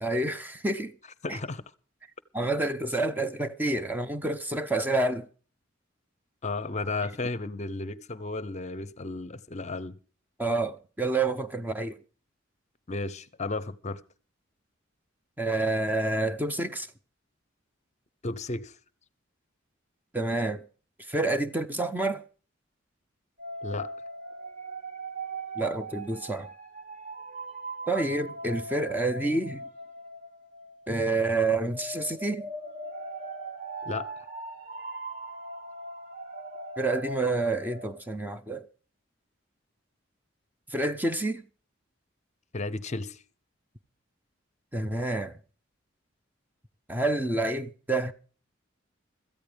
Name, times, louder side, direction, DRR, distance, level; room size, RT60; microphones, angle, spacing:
voice 1, 0.0-0.9 1.3-1.4 2.3-5.3 10.4-12.0 15.4-16.9 20.1-20.6 21.1-22.2 25.6-26.5 27.9-29.6 30.9-32.5 36.8-38.7 40.7-41.4 44.7-45.4 46.9-48.1, right 2 dB, 10° right, 0.7 m, -28 dB
voice 2, 1.2-1.6 6.4-10.0 12.9-14.0 18.2-18.7 23.6-23.9 33.8-34.1 42.5-43.2, left 3 dB, 35° left, 0.7 m, -33 dB
sound 1, 23.4-31.3 31.6-38.0, right 2 dB, 40° right, 2.4 m, -40 dB
17.0 x 14.0 x 3.4 m
head